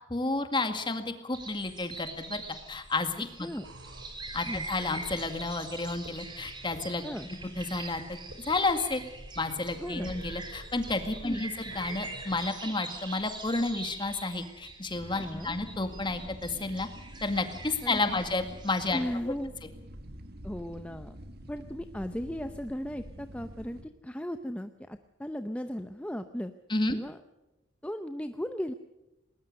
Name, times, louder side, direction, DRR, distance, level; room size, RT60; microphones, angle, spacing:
voice 1, 0.1-2.4 2.7-3.5 4.3-7.1 7.6-9.0 9.4-16.9 17.2-19.3 26.7-27.0, left 3 dB, 25° left, 7 dB, 2.0 m, -31 dB
sound 1, 1.3-19.0, right 3 dB, 25° right, 3.4 m, -44 dB
sound 2, 3.6-12.4, right 1 dB, 85° right, 3.1 m, -48 dB
voice 2, 9.8-10.1 11.2-11.4 15.2-15.6 17.8-18.2 18.9-19.5 20.4-21.1 21.5-26.5 26.9-27.2 27.8-28.7, equal, 5° left, 8 dB, 0.7 m, -36 dB
sound 3, 14.9-23.8, equal, 55° right, 1.7 m, -47 dB
20.0 x 20.0 x 6.6 m, 1.0 s
head